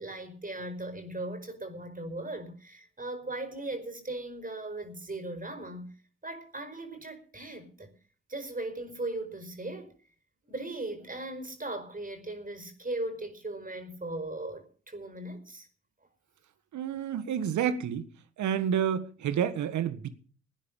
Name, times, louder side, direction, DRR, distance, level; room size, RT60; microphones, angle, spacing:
voice 1, 0.0-5.9 6.2-7.9 8.3-9.9 10.5-15.7, right 2 dB, 30° right, 5.0 m, -38 dB
voice 2, 16.7-18.0 18.4-20.1, right 8 dB, 70° right, 1.6 m, -29 dB
18.5 x 9.7 x 5.4 m
hypercardioid pair, 40°, 30 cm